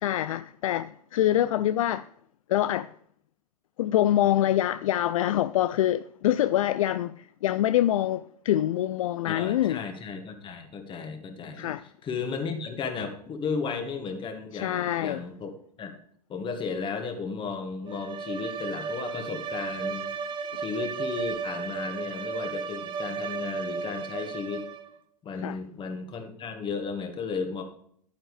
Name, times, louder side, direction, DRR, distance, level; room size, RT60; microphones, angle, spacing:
voice 1, 0.0-2.1 2.5-2.9 3.8-9.8 11.6-11.8 14.5-15.2 25.4-25.6, left 12 dB, 60° left, 0.4 m, -25 dB
voice 2, 9.3-11.7 12.0-15.5 15.8-15.9 16.3-20.1 20.6-24.6 25.2-27.6, left 5 dB, 25° left, 1.9 m, -34 dB
Bowed string instrument, 17.9-25.0, right 5 dB, 25° right, 0.8 m, -34 dB
11.0 x 9.0 x 3.3 m
figure-of-eight pair, 95°, 20 cm